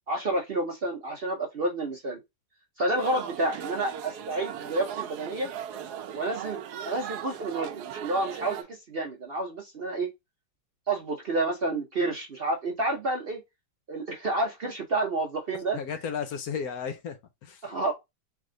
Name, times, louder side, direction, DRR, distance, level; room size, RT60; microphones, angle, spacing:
voice 1, 0.1-2.2 2.8-5.5 6.1-6.6 6.8-10.1 10.9-13.4 13.9-15.8 17.6-17.9, right 2 dB, 50° right, 0.7 m, -29 dB
sound 1, 3.0-8.6, right 9 dB, 75° right, 1.1 m, -38 dB
voice 2, 15.7-17.6, left 6 dB, 65° left, 1.1 m, -34 dB
3.4 x 3.4 x 3.7 m
omnidirectional pair, 1.8 m